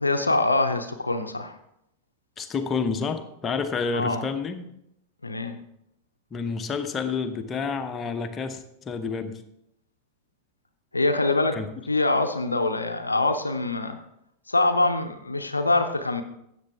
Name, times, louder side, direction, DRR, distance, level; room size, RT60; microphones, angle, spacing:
voice 1, 0.0-1.5 3.9-4.2 5.2-5.6 10.9-11.6 11.9-14.0 14.5-16.2, left 2 dB, 80° left, 7 dB, 0.6 m, -24 dB
voice 2, 2.4-4.7 6.3-9.4 11.5-11.7, left 5 dB, 20° left, 7 dB, 1.0 m, -29 dB
13.0 x 8.3 x 3.5 m, 0.80 s
figure-of-eight pair, 90°, 0 cm